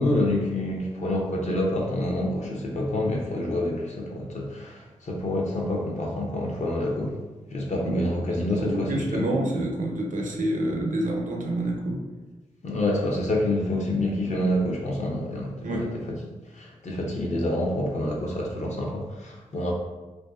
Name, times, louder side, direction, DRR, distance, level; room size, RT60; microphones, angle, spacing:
voice 1, 0.0-7.2 7.5-9.3 12.6-15.9 16.5-19.7, left 1 dB, 60° left, -1 dB, 0.6 m, -27 dB
voice 2, 8.6-12.0 15.6-15.8, right 1 dB, 70° right, 0 dB, 0.5 m, -28 dB
2.5 x 2.3 x 2.3 m, 1.2 s
cardioid pair, 60°, 14 cm